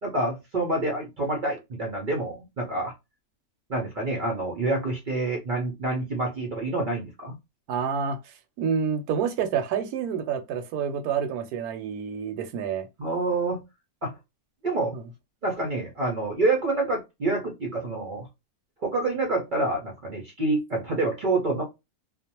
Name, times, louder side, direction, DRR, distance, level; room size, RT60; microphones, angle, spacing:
voice 1, 0.0-2.9 3.7-7.4 13.0-13.6 14.0-14.1 14.6-15.0 15.4-18.3 18.8-21.6, right 2 dB, 55° right, 0.5 m, -27 dB
voice 2, 7.7-12.9 14.9-15.1, right 7 dB, 80° right, 1.1 m, -28 dB
2.5 x 2.1 x 2.8 m
omnidirectional pair, 1.6 m